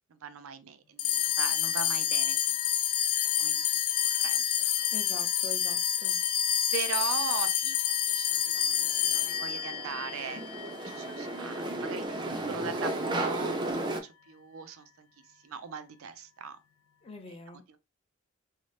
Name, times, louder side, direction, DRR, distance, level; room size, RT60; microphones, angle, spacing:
voice 1, 0.1-2.6 3.2-3.6 4.2-5.2 6.7-15.1 15.4-16.6 17.3-17.8, right 6 dB, 80° right, 0.4 m, -40 dB
sound 1, 1.0-11.6, left 10 dB, 80° left, 0.3 m, -28 dB
voice 2, 4.9-6.2 17.0-17.8, left 3 dB, 30° left, 0.5 m, -44 dB
sound 2, 8.6-14.0, right 1 dB, 20° right, 0.4 m, -34 dB
2.6 x 2.0 x 3.1 m
head